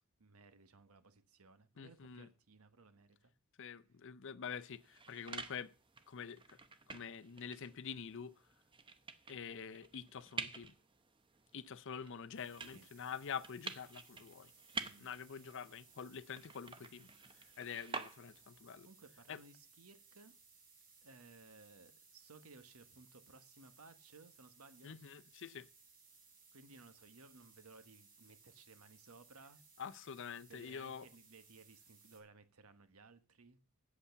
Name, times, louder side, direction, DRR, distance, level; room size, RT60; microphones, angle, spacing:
voice 1, 0.2-3.3 12.7-12.9 14.7-15.1 18.8-20.4 21.0-25.0 26.5-29.6 30.5-33.6, right 3 dB, 80° right, 1.2 m, -60 dB
voice 2, 1.8-2.3 3.6-5.7 6.1-6.6 6.9-8.3 9.3-10.7 11.5-14.5 15.0-17.1 17.6-18.9 19.3-19.4 24.8-25.7 29.8-31.1, left 7 dB, 60° left, 0.6 m, -46 dB
sound 1, 4.7-18.6, right 4 dB, 25° right, 0.9 m, -50 dB
sound 2, 12.3-32.2, right 4 dB, 40° right, 4.8 m, -64 dB
8.4 x 8.3 x 6.8 m
head